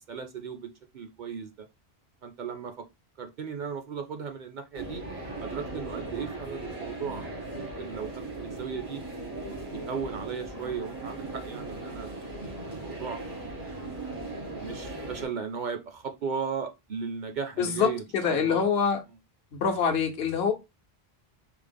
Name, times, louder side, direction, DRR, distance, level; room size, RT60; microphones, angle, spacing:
voice 1, 0.1-1.7 2.2-2.9 3.2-5.1 5.4-7.2 7.5-9.0 9.4-12.1 12.4-13.2 14.5-18.7, right 6 dB, 55° right, 0.6 m, -36 dB
sound 1, 4.7-15.3, right 2 dB, 85° right, 2.3 m, -38 dB
voice 2, 17.6-19.0 19.5-20.5, left 6 dB, 80° left, 1.0 m, -25 dB
5.0 x 2.0 x 3.3 m
omnidirectional pair, 1.0 m